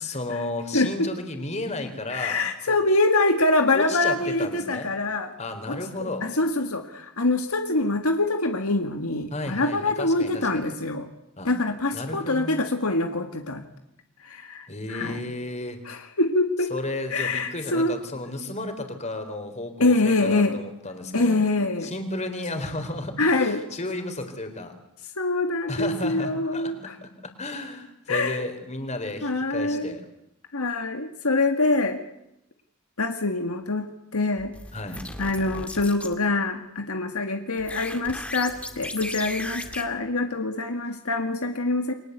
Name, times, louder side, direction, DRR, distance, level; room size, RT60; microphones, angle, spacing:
voice 1, 0.0-2.4 2.7-2.8 3.7-4.9 5.4-6.3 9.3-10.7 11.4-11.5 11.9-12.6 14.7-15.8 16.7-21.4 21.8-24.7 25.7-30.1 34.7-35.0, left 2 dB, 30° left, 7 dB, 4.0 m, -33 dB
voice 2, 0.7-1.1 2.1-5.3 5.7-11.1 11.4-13.6 14.2-15.2 15.9-16.7 17.1-18.0 19.8-20.6 21.1-21.9 23.2-23.6 25.2-26.9 28.1-28.4 29.2-29.9 30.5-32.0 33.0-34.5 35.2-41.9, left 2 dB, 75° left, 6 dB, 1.9 m, -25 dB
sound 1, 34.4-36.1 37.6-39.8, left 1 dB, 5° left, 2.2 m, -36 dB
29.0 x 23.5 x 8.1 m, 0.83 s
head